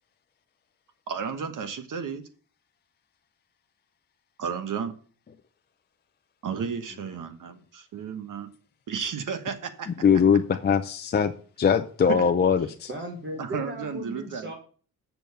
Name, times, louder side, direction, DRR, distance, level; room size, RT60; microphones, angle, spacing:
voice 1, 1.1-2.2 4.4-4.9 6.4-8.5 8.9-9.9 13.4-14.5, right 6 dB, 55° right, 1.2 m, -33 dB
voice 2, 10.0-11.3 11.6-12.9, left 7 dB, 30° left, 0.5 m, -21 dB
voice 3, 12.9-14.5, right 1 dB, 30° right, 1.4 m, -36 dB
7.0 x 6.2 x 6.9 m
wide cardioid pair, 160°, 37 cm